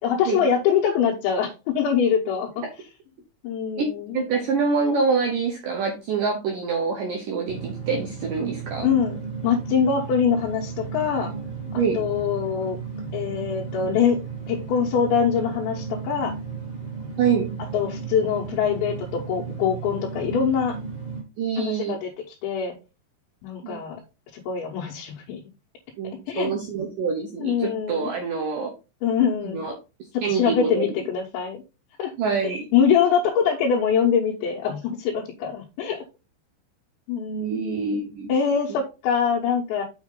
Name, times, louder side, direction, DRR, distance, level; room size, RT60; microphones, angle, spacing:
voice 1, 0.0-2.6 3.4-4.2 8.8-11.3 11.9-12.8 13.1-14.2 14.5-16.3 17.7-20.8 21.6-22.1 22.4-22.7 23.4-24.0 24.3-25.4 26.3-26.5 27.4-28.1 29.0-29.6 30.1-31.6 32.0-32.1 32.4-36.0 37.1-37.6 38.3-39.8, left 7 dB, 75° left, -2 dB, 3.3 m, -24 dB
voice 2, 4.1-8.9 11.7-12.0 17.2-17.5 21.4-22.0 23.6-23.8 26.0-28.7 29.4-29.7 30.2-30.9 32.2-32.7 37.3-38.3, right 5 dB, 85° right, 2 dB, 1.8 m, -25 dB
sound 1, 7.5-21.2, right 5 dB, 25° right, 1.3 m, -34 dB
7.1 x 6.3 x 3.8 m, 0.29 s
omnidirectional pair, 5.5 m